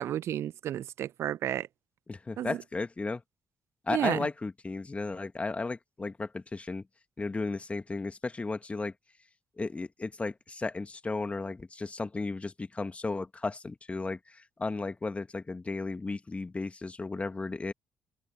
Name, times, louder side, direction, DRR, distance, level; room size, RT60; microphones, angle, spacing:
voice 1, 0.0-1.7 2.4-2.6 3.9-4.3, right 11 dB, 55° right, 0.7 m, -32 dB
voice 2, 2.1-3.2 3.9-6.8 7.2-8.9 9.6-17.7, left 3 dB, 25° left, 2.3 m, -34 dB
figure-of-eight pair, 45°, 5 cm